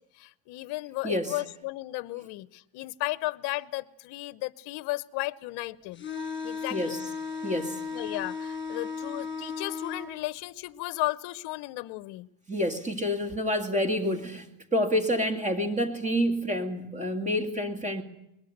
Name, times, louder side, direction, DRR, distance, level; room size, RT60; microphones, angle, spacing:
voice 1, 0.2-6.0 6.4-6.9 7.9-12.3, left 20 dB, 50° left, 0.9 m, -34 dB
sound 1, 5.9-10.1, left 5 dB, 20° left, 6.9 m, -35 dB
voice 2, 7.4-7.8 12.5-14.5 14.7-18.0, equal, 15° right, 2.3 m, -28 dB
22.5 x 21.0 x 6.7 m
supercardioid pair, 130°, 50 cm